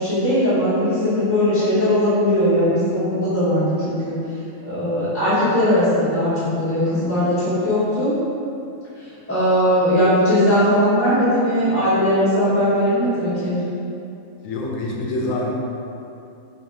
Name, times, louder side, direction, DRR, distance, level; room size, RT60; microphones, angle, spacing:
voice 1, 0.0-4.2 4.6-8.2 9.3-13.5, equal, 10° left, -14 dB, 1.4 m, -19 dB
voice 2, 14.4-15.5, left 2 dB, 70° left, -2 dB, 1.0 m, -25 dB
4.0 x 2.8 x 3.6 m, 2.6 s
omnidirectional pair, 1.5 m